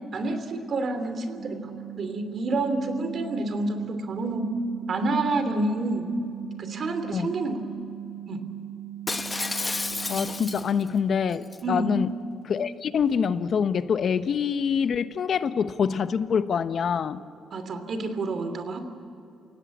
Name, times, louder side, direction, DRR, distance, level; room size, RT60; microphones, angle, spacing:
voice 1, 0.1-1.6 1.9-4.5 4.9-6.1 6.6-7.6 8.3-8.4 11.6-11.9 17.5-18.8, right 2 dB, 55° right, 8 dB, 3.0 m, -28 dB
sound 1, 1.4-10.9, right 12 dB, 35° right, 5.5 m, -40 dB
Shatter, 9.1-10.9 11.3-11.6, left 3 dB, 20° left, 1.1 m, -31 dB
voice 2, 10.1-12.1 12.4-17.2, left 6 dB, 55° left, 12 dB, 1.0 m, -25 dB
29.5 x 17.0 x 8.5 m, 2.7 s
cardioid pair, 90°, 0 cm